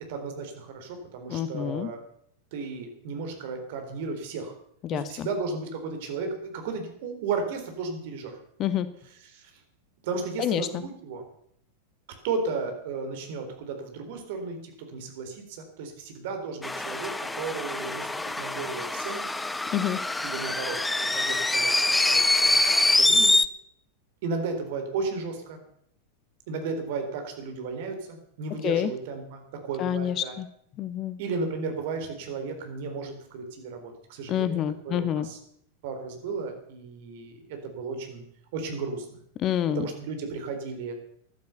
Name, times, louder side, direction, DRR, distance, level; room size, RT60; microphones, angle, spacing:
voice 1, 0.1-2.0 2.5-4.5 4.9-8.4 9.2-9.5 10.0-11.2 12.2-18.1 18.4-19.3 20.2-22.6 22.9-23.3 24.2-25.6 26.5-30.4 31.2-35.4 35.8-38.2 38.5-39.2 39.7-40.9, right 4 dB, 50° right, 5 dB, 3.9 m, -34 dB
voice 2, 1.3-1.9 4.8-5.3 8.6-8.9 10.4-10.8 19.7-20.0 28.6-28.9 29.8-30.5 30.8-31.2 34.3-35.3 39.4-39.8, left 10 dB, 35° left, 15 dB, 1.0 m, -27 dB
sound 1, 16.6-23.5, left 2 dB, 5° left, 0.7 m, -24 dB
15.0 x 11.5 x 6.8 m, 0.68 s
figure-of-eight pair, 90°, 0 cm